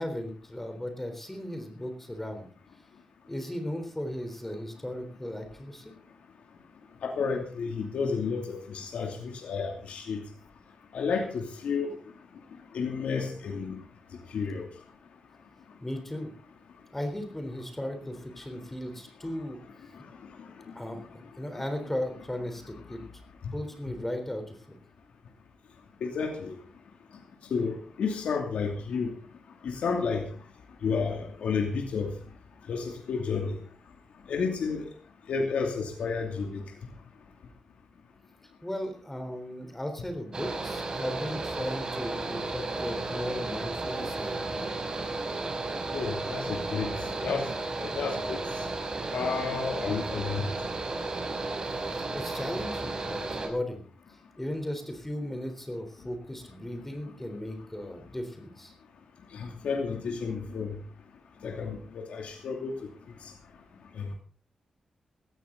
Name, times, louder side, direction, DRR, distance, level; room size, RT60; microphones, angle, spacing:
voice 1, 0.0-2.5 3.3-5.9 15.8-16.3 16.9-19.6 20.8-23.0 23.5-24.8 38.6-44.6 51.9-53.8 54.4-58.7, left 1 dB, 10° left, 7 dB, 3.7 m, -36 dB
voice 2, 7.0-10.2 10.9-11.9 12.7-13.8 14.3-14.6 26.0-26.5 27.5-29.1 29.6-30.2 30.8-32.1 32.7-33.6 34.3-34.9 35.3-36.6 45.9-46.9 47.2-47.5 47.8-48.4 49.1-50.5 59.3-60.7 61.4-62.7 64.0-64.1, left 5 dB, 85° left, 3 dB, 2.7 m, -31 dB
Mechanical fan, 40.3-53.5, right 2 dB, 40° right, 5.0 m, -33 dB
18.0 x 14.0 x 3.9 m, 0.39 s
cardioid pair, 90°, 2 cm